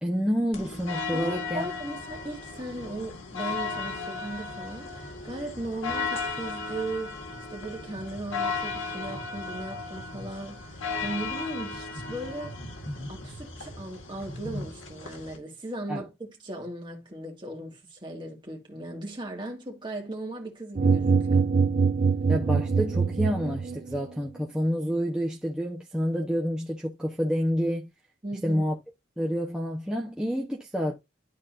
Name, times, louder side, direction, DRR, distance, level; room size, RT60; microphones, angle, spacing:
voice 1, 0.0-1.7 15.9-16.0 22.3-27.9 28.4-28.7 29.2-30.9, equal, 5° right, 1.0 m, -28 dB
sound 1, 0.5-15.4, left 4 dB, 90° left, 2.0 m, -35 dB
voice 2, 1.1-12.6 13.1-21.5 28.2-28.7, right 1 dB, 25° right, 2.1 m, -37 dB
sound 2, 20.8-24.0, right 5 dB, 40° right, 0.4 m, -23 dB
12.5 x 4.3 x 2.6 m
head